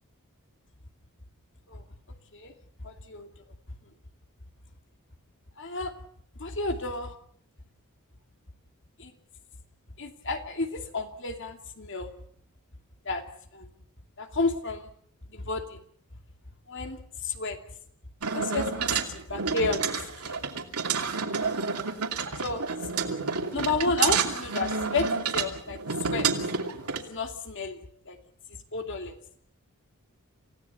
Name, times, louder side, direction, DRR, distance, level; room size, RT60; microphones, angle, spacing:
voice 1, 2.8-3.3 5.6-5.9 6.4-7.1 9.0-9.1 10.0-12.1 13.1-13.2 13.5-13.7 14.2-14.9 15.3-15.8 16.7-17.0 17.2-17.6 18.3-19.8 20.2-20.4 22.4-22.6 23.5-26.3 27.0-27.8 28.1-28.2 28.7-29.2, left 3 dB, 55° left, 6 dB, 2.6 m, -31 dB
sound 1, 18.2-27.0, right 5 dB, 85° right, 2.7 m, -29 dB
28.0 x 17.0 x 7.0 m, 0.62 s
head